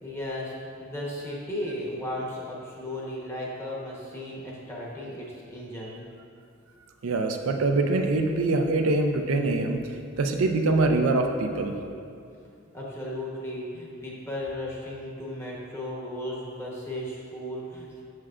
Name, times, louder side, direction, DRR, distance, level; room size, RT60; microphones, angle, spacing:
voice 1, 0.0-6.0 12.7-18.0, left 1 dB, 15° left, -5 dB, 1.0 m, -35 dB
voice 2, 7.0-9.8 10.2-11.8, right 2 dB, 80° right, 4 dB, 0.5 m, -24 dB
7.4 x 6.2 x 2.5 m, 2.5 s
head